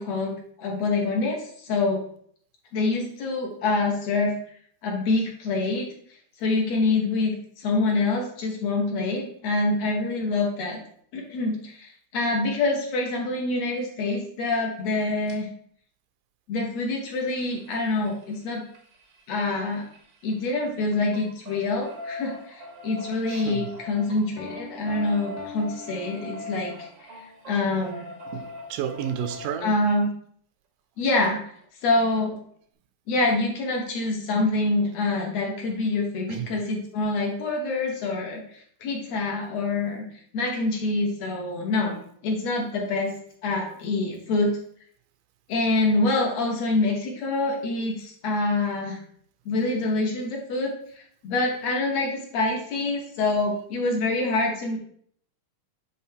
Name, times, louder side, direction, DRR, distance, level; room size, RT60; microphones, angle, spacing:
voice 1, 0.0-2.0 2.7-4.3 4.8-5.9 6.4-10.8 11.1-15.5 16.5-18.6 19.3-19.9 20.2-28.1 29.6-30.1 31.0-31.4 31.8-32.4 33.1-40.0 40.3-41.9 42.2-43.1 43.4-44.5 45.5-49.0 49.5-54.8, left 2 dB, 60° left, 2.1 m, -26 dB
sound 1, 15.3-15.4 17.0-20.5 20.8-29.6 31.2-31.3 31.6-31.7 32.0-32.1, left 2 dB, 60° right, 1.2 m, -41 dB
voice 2, 23.3-23.8 28.3-29.8 36.3-36.6 39.9-40.0 41.8-42.0 43.7-43.8, right 8 dB, 80° right, 2.2 m, -32 dB
Piano, 24.4-26.8, left 5 dB, 90° left, 2.7 m, -42 dB
9.5 x 3.6 x 4.6 m
omnidirectional pair, 3.7 m